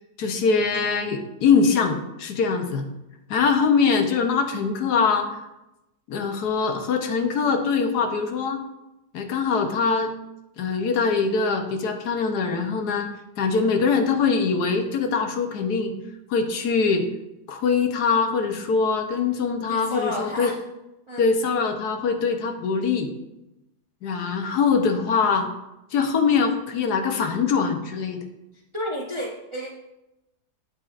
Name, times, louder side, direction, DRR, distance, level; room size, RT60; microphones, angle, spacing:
voice 1, 0.2-2.9 3.3-5.3 6.1-8.6 9.1-10.1 10.6-13.1 13.4-15.9 16.3-17.0 17.5-20.5 21.2-23.1 24.0-25.5 25.9-28.2, left 5 dB, 80° left, 5 dB, 1.4 m, -23 dB
voice 2, 19.7-20.6 21.1-21.2 28.7-29.7, left 1 dB, 30° right, -1 dB, 0.5 m, -31 dB
8.6 x 7.8 x 2.5 m, 0.91 s
omnidirectional pair, 1.7 m